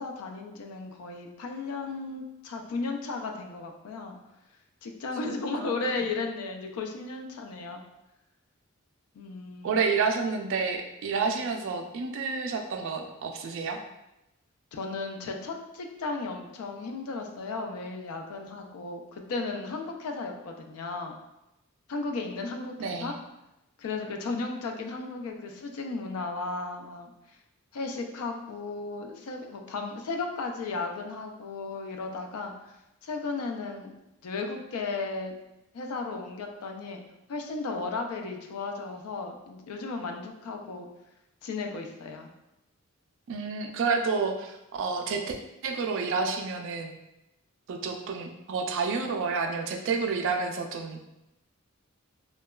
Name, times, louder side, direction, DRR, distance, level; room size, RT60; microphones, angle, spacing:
voice 1, 0.0-4.2 4.8-7.8 9.1-9.8 14.7-21.1 21.9-23.1 23.8-27.4 27.7-32.7 33.0-33.9 34.2-35.3 35.7-37.0 37.3-40.9 41.4-42.3, left 3 dB, 80° left, 3 dB, 0.4 m, -35 dB
voice 2, 9.6-13.8 22.8-23.1 43.3-46.9 47.7-51.0, right 4 dB, 60° right, 4 dB, 0.3 m, -29 dB
2.8 x 2.2 x 2.2 m, 0.91 s
head